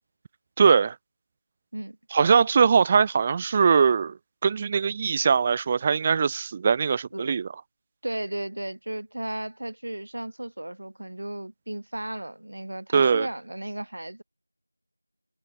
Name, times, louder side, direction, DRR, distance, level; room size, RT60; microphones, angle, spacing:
voice 1, 0.6-0.9 2.1-4.2 4.4-7.5 12.9-13.3, right 6 dB, 15° right, 1.3 m, -21 dB
voice 2, 8.0-14.2, right 1 dB, 55° right, 7.5 m, -34 dB
figure-of-eight pair, 175°, 0 cm